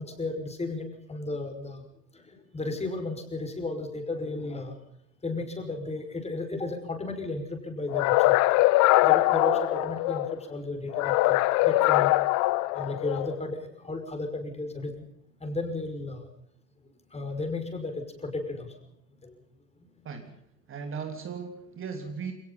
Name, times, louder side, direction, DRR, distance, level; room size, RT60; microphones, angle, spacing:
voice 1, 0.0-1.8 2.1-2.2 2.5-4.7 5.2-8.3 9.0-12.1 12.7-15.0 15.4-16.3 17.1-18.7 19.2-19.3, left 2 dB, 15° left, 6 dB, 5.6 m, -34 dB
sound 1, 7.9-10.3 10.9-13.3, left 20 dB, 35° left, 1.0 m, -22 dB
voice 2, 20.0-20.4 20.7-22.3, right 5 dB, 25° right, 5 dB, 3.0 m, -37 dB
28.5 x 18.5 x 5.6 m, 0.73 s
figure-of-eight pair, 85°, 48 cm